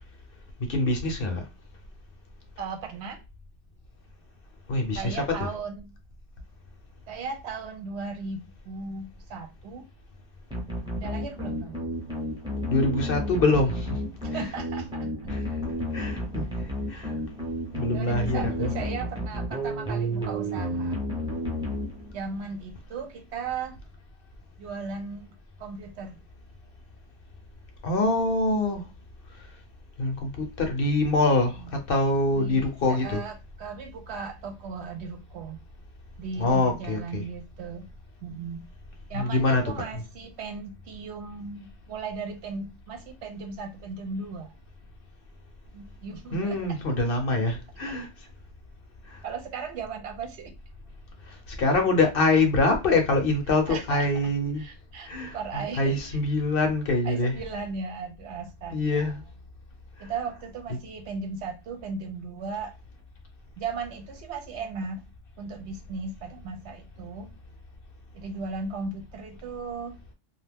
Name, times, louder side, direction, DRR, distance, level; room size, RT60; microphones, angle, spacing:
voice 1, 0.7-1.4 4.7-5.6 12.7-14.0 14.3-14.6 15.3-15.4 15.9-16.4 16.9-17.1 17.7-18.7 27.8-28.8 30.0-31.6 31.9-33.2 36.3-37.2 39.1-39.8 46.3-48.1 51.3-54.6 55.1-57.4 58.7-59.2, left 2 dB, 55° left, 0.8 m, -25 dB
voice 2, 2.6-3.2 4.9-5.9 7.1-9.9 11.0-11.9 14.2-15.3 17.9-21.0 22.1-23.8 24.6-25.3 25.6-26.2 31.6-31.8 32.3-35.6 36.2-37.9 38.2-38.6 39.1-44.5 45.7-46.8 49.2-50.6 53.7-56.2 57.0-59.2 60.0-62.7 63.6-65.0 65.4-67.3 68.1-70.0, right 4 dB, 70° right, 0.8 m, -36 dB
sound 1, 10.5-22.4, equal, 5° right, 0.7 m, -31 dB
2.6 x 2.2 x 3.4 m
omnidirectional pair, 1.3 m